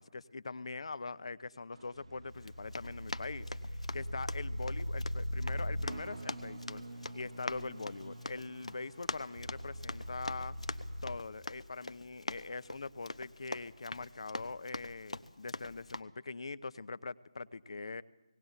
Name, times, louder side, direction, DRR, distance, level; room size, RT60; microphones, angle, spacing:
voice 1, 0.0-6.8 7.1-10.5 11.0-18.0, left 3 dB, 60° left, 17 dB, 0.8 m, -43 dB
sound 1, 1.7-11.2, equal, 60° right, 1.3 m, -41 dB
Run, 2.4-16.0, left 2 dB, 80° left, 1.1 m, -44 dB
19.0 x 18.0 x 7.9 m, 1.1 s
figure-of-eight pair, 155°, 3 cm